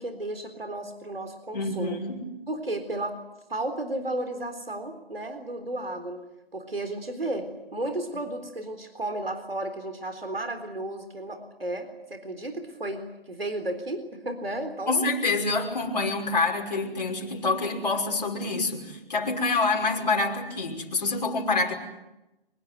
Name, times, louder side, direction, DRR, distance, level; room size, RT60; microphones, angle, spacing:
voice 1, 0.0-2.0 2.5-3.2 3.5-6.2 6.5-15.1, right 1 dB, 75° right, 7 dB, 3.8 m, -33 dB
voice 2, 1.5-2.3 14.9-21.7, left 3 dB, 45° left, 0 dB, 5.8 m, -27 dB
25.0 x 22.0 x 9.5 m, 0.94 s
figure-of-eight pair, 155°, 30 cm